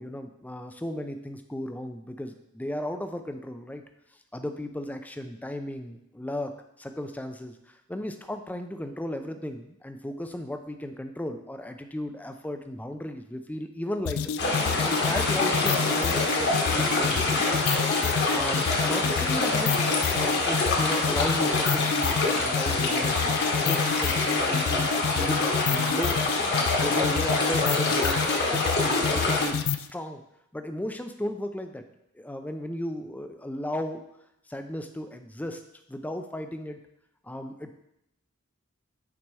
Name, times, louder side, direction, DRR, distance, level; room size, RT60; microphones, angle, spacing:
voice 1, 0.0-3.8 4.3-14.3 14.8-17.4 18.3-26.2 26.8-30.2 30.5-31.8 32.2-34.0 34.5-35.6 35.9-36.8 37.2-37.8, left 1 dB, 10° left, 7 dB, 0.4 m, -35 dB
sound 1, 14.1-29.9, left 7 dB, 75° left, 0.3 m, -29 dB
sound 2, 14.4-29.5, left 2 dB, 55° left, 1.4 m, -26 dB
6.1 x 4.3 x 4.7 m, 0.81 s
head